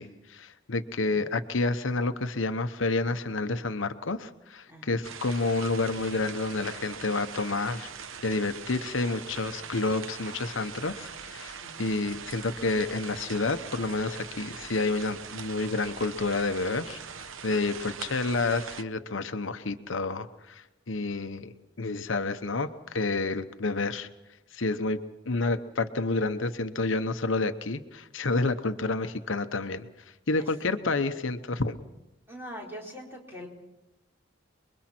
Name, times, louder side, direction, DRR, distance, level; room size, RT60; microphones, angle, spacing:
voice 1, 0.0-7.9 8.2-21.5 21.8-24.1 24.5-29.9 30.3-31.8, left 3 dB, 75° left, 9 dB, 0.9 m, -29 dB
voice 2, 4.7-5.0 9.6-10.0 11.6-11.8 30.4-30.5 32.3-33.5, equal, 10° right, -2 dB, 4.1 m, -43 dB
sound 1, 5.0-18.8, right 6 dB, 90° right, 0.9 m, -42 dB
30.0 x 22.0 x 4.4 m, 0.99 s
head